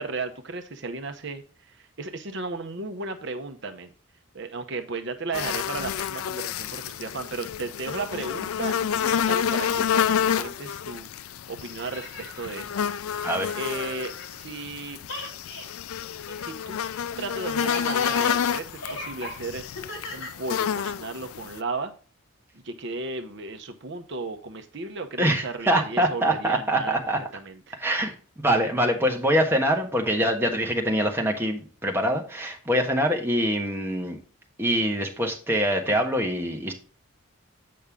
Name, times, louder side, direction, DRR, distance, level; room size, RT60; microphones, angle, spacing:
voice 1, 0.0-3.9 4.3-12.1 12.4-13.3 13.6-15.0 16.4-16.8 17.2-19.6 20.1-21.9 22.6-27.0 27.3-27.8, right 3 dB, 55° right, 7 dB, 0.9 m, -35 dB
sound 1, 5.3-21.6, left 8 dB, 85° left, 0.4 m, -29 dB
sound 2, 11.6-14.7 15.0-21.0, left 2 dB, 70° left, 2.5 m, -39 dB
voice 2, 25.2-27.2 27.8-34.2 34.6-36.7, equal, 10° right, 2 dB, 1.4 m, -24 dB
8.6 x 5.4 x 3.6 m, 0.38 s
head